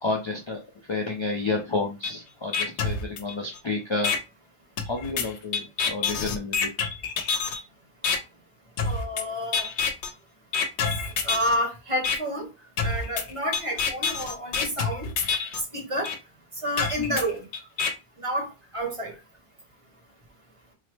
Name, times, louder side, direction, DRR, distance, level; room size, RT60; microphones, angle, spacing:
voice 1, 0.0-0.6 0.9-4.1 4.8-6.7 17.1-17.2, left 3 dB, 35° left, 0.5 m, -30 dB
sound 1, 2.0-2.1 2.5-3.6 4.0-4.2 4.8-7.6 8.0-8.2 8.8-9.2 9.5-10.1 10.5-11.6 12.0-12.2 12.8-15.6 16.0-16.2 16.8-17.9, left 5 dB, 85° left, 0.9 m, -27 dB
voice 2, 8.8-9.7 11.2-12.5 12.8-15.1 15.7-16.1 16.6-17.5 18.2-19.1, equal, 30° right, 0.9 m, -29 dB
3.7 x 2.0 x 3.2 m
omnidirectional pair, 1.1 m